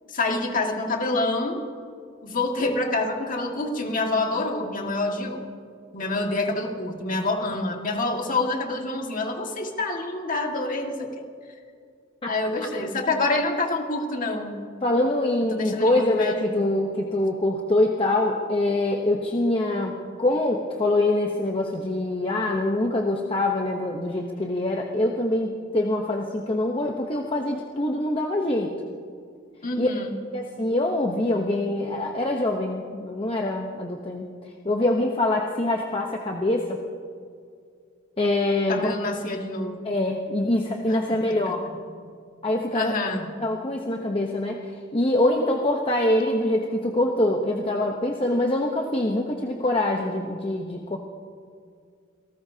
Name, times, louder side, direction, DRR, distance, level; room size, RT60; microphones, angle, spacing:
voice 1, 0.1-1.6 2.2-5.4 5.9-11.2 12.2-14.6 15.5-16.7 29.6-30.2 38.7-39.8 40.9-41.8 42.7-43.4, left 2 dB, 40° left, 2 dB, 1.8 m, -27 dB
voice 2, 14.8-28.7 29.8-29.9 30.3-34.3 34.6-36.8 38.2-38.9 39.8-41.6 42.4-43.0 43.4-44.6 44.9-51.0, left 1 dB, 25° left, 1 dB, 0.9 m, -24 dB
27.5 x 18.5 x 2.8 m, 2.2 s
head